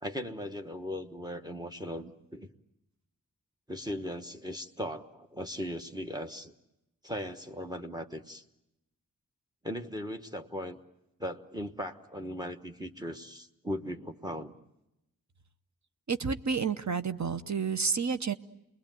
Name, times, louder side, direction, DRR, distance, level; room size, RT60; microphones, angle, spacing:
voice 1, 0.0-2.5 3.7-6.5 7.0-8.4 9.6-10.8 11.2-14.5, equal, 10° right, 6 dB, 1.2 m, -38 dB
voice 2, 16.1-18.3, right 5 dB, 55° right, 10 dB, 0.9 m, -30 dB
28.5 x 21.0 x 9.1 m, 0.89 s
wide cardioid pair, 105°, 34 cm